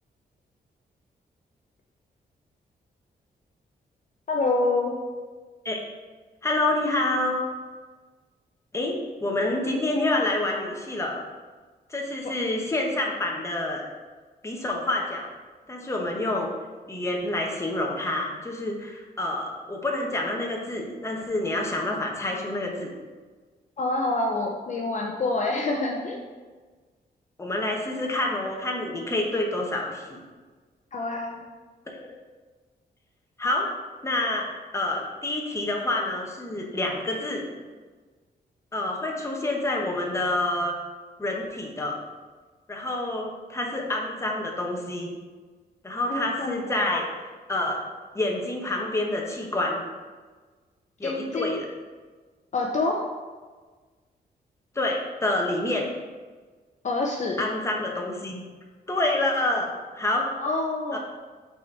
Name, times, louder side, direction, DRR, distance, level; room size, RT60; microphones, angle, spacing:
voice 1, 4.3-5.0 23.8-26.2 30.9-31.4 46.1-46.6 51.0-51.6 52.5-53.0 56.8-57.5 60.4-61.0, left 2 dB, 45° left, 0 dB, 0.7 m, -26 dB
voice 2, 6.4-7.4 8.7-11.2 11.9-13.8 14.4-15.3 15.7-16.5 16.9-22.9 27.4-30.2 31.9-32.1 33.4-33.7 34.0-34.5 34.7-37.4 38.7-40.8 41.2-42.0 42.7-45.1 45.8-47.1 47.5-47.8 48.1-49.8 51.0-51.7 54.7-55.9 57.4-58.4 58.9-60.3 60.9-61.0, left 2 dB, 15° left, 0 dB, 1.0 m, -27 dB
6.0 x 4.2 x 4.6 m, 1.4 s
wide cardioid pair, 125°, 16 cm